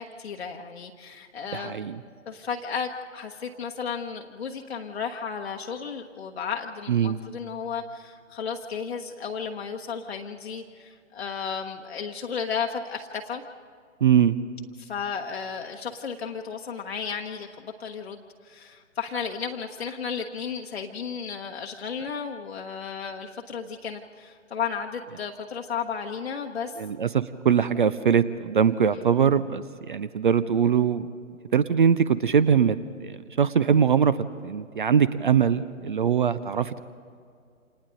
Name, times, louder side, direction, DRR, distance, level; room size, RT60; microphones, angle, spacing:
voice 1, 0.0-1.9 2.3-13.4 14.8-26.8 28.9-29.0, left 6 dB, 50° left, 1 dB, 1.2 m, -34 dB
voice 2, 1.5-2.0 6.9-7.2 14.0-14.4 26.8-31.1 31.5-34.1 34.4-36.8, right 7 dB, 40° right, 16 dB, 0.6 m, -22 dB
29.0 x 27.0 x 3.8 m, 2.3 s
figure-of-eight pair, 130°, 39 cm